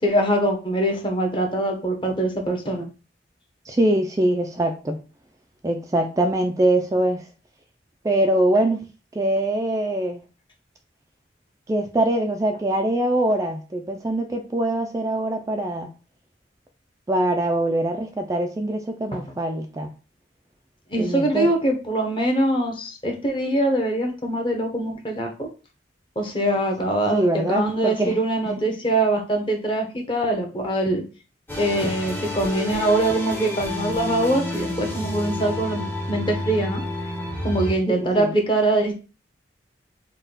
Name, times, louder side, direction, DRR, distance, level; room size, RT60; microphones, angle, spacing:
voice 1, 0.0-2.9 19.1-19.2 20.9-25.5 26.2-31.0 31.6-36.8 37.4-39.0, right 1 dB, 30° left, 2 dB, 0.9 m, -23 dB
voice 2, 3.6-5.0 5.6-7.3 8.0-8.9 9.1-10.2 11.7-15.9 17.1-19.9 21.0-21.5 27.1-28.2 28.5-28.6 38.2-38.3, right 1 dB, 20° right, 5 dB, 0.3 m, -23 dB
sound 1, 31.5-37.7, left 2 dB, 10° left, 0.7 m, -29 dB
4.1 x 2.2 x 3.9 m, 0.33 s
head